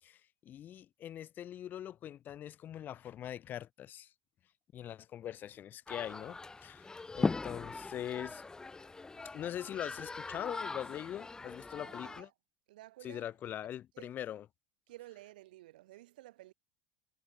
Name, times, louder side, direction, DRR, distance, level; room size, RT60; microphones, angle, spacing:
voice 1, 0.0-4.1 4.7-8.4 9.3-12.3 13.0-14.4, left 11 dB, 40° left, 2.2 m, -42 dB
sound 1, 5.9-12.2, left 3 dB, 15° left, 2.0 m, -40 dB
voice 2, 11.8-12.3 12.7-13.3 13.9-14.1 14.9-16.5, right 17 dB, 85° right, 4.7 m, -53 dB
supercardioid pair, 100°, 5 cm